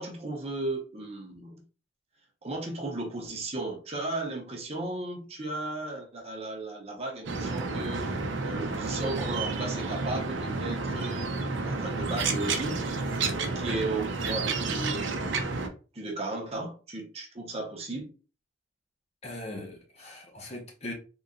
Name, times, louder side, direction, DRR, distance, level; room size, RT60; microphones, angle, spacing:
voice 1, 0.0-1.6 2.4-11.3 11.6-12.8 13.1-15.5 15.9-18.1, right 2 dB, 30° right, 0.7 m, -35 dB
sound 1, 7.3-15.7, right 3 dB, 70° right, 0.6 m, -31 dB
voice 2, 19.2-20.9, left 1 dB, 30° left, 0.7 m, -40 dB
3.8 x 2.9 x 2.5 m
head